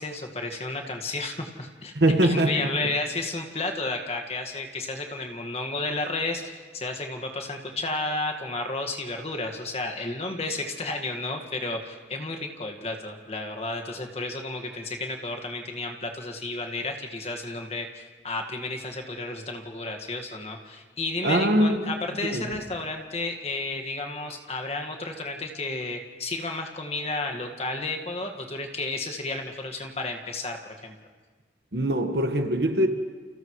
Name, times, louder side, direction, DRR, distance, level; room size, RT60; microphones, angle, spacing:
voice 1, 0.0-1.9 2.2-30.6 30.8-30.9, left 2 dB, 35° left, 3 dB, 1.8 m, -32 dB
voice 2, 1.9-2.7 21.2-21.9 22.3-22.4 31.7-32.9, right 1 dB, 60° right, 5 dB, 1.6 m, -22 dB
29.5 x 29.5 x 3.2 m, 1.4 s
head